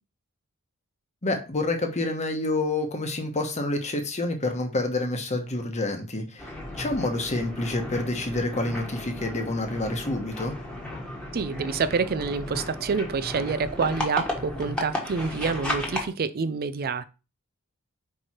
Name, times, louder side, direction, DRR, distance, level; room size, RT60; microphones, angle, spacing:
voice 1, 1.2-10.5, left 2 dB, 30° left, 1.1 m, -28 dB
sound 1, 6.4-16.1, left 1 dB, 5° left, 1.5 m, -34 dB
voice 2, 11.3-17.0, right 5 dB, 45° right, 0.5 m, -27 dB
4.7 x 4.7 x 4.3 m
head